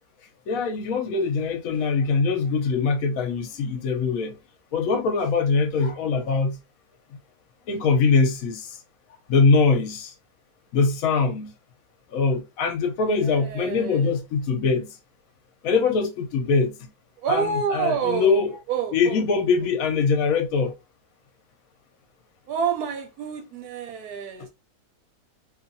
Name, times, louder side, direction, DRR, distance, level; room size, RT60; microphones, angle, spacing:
voice 1, 0.5-4.3 4.7-6.6 7.7-8.8 9.3-10.1 10.7-11.5 12.1-15.0 15.6-16.7 17.3-18.5 18.9-20.7, left 4 dB, 65° left, 0.9 m, -22 dB
voice 2, 13.1-14.1 17.2-18.4 18.7-19.2 22.5-24.5, right 6 dB, 70° right, 1.0 m, -28 dB
2.8 x 2.4 x 2.6 m
omnidirectional pair, 1.9 m